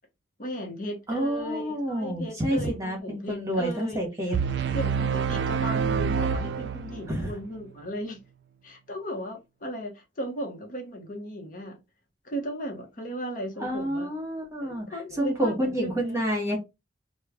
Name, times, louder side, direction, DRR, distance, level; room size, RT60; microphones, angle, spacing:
voice 1, 0.4-4.4 4.7-8.2 8.6-11.8 12.2-14.1 14.6-16.2, equal, 45° left, 0.8 m, -36 dB
voice 2, 1.1-4.4 7.1-7.3 13.6-16.6, equal, 15° right, 1.1 m, -29 dB
sound 1, 4.3-7.3, right 6 dB, 65° right, 0.3 m, -27 dB
3.1 x 2.1 x 3.5 m
head